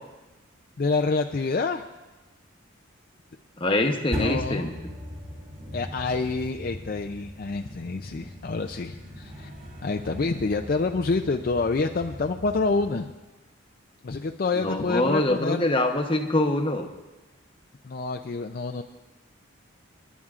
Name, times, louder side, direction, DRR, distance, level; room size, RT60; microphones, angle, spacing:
voice 1, 0.8-1.8 4.1-4.8 5.7-9.5 9.8-13.1 14.0-15.7 17.8-18.8, left 3 dB, 45° left, 5 dB, 0.4 m, -27 dB
voice 2, 3.6-4.7 14.5-16.9, left 1 dB, 25° left, 4 dB, 0.9 m, -24 dB
sound 1, 4.1-12.9, left 1 dB, 35° right, 2.8 m, -38 dB
28.5 x 11.0 x 2.5 m, 1.1 s
head